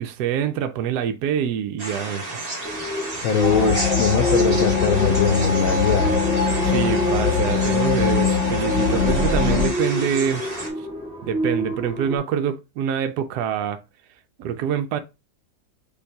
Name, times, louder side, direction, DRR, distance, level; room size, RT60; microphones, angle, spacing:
voice 1, 0.0-2.4 6.6-10.4 11.2-13.8 14.4-15.0, right 8 dB, 80° right, 1.1 m, -25 dB
sound 1, 1.8-10.7, right 2 dB, 25° right, 1.1 m, -32 dB
sound 2, 2.6-12.2, right 1 dB, 5° right, 0.9 m, -28 dB
voice 2, 3.2-6.2, left 6 dB, 70° left, 0.9 m, -22 dB
sound 3, 3.4-9.7, left 6 dB, 25° left, 1.4 m, -22 dB
6.4 x 3.0 x 2.7 m
omnidirectional pair, 1.7 m